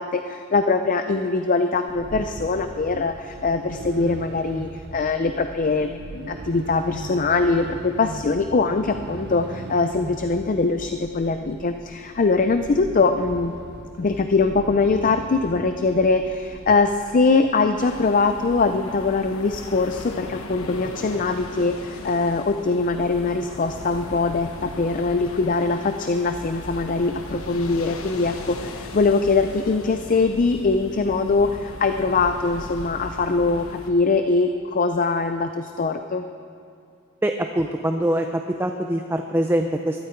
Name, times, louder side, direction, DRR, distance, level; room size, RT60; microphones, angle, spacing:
voice 1, 0.0-13.5 14.0-36.2, left 3 dB, 40° left, 8 dB, 0.5 m, -22 dB
sound 1, 1.9-17.9, right 3 dB, 55° right, 0.6 m, -39 dB
sound 2, 17.8-33.9, left 2 dB, 85° left, 1.2 m, -38 dB
voice 2, 37.2-40.0, right 1 dB, 10° right, 5 dB, 0.5 m, -24 dB
22.0 x 12.5 x 4.5 m, 2.5 s
head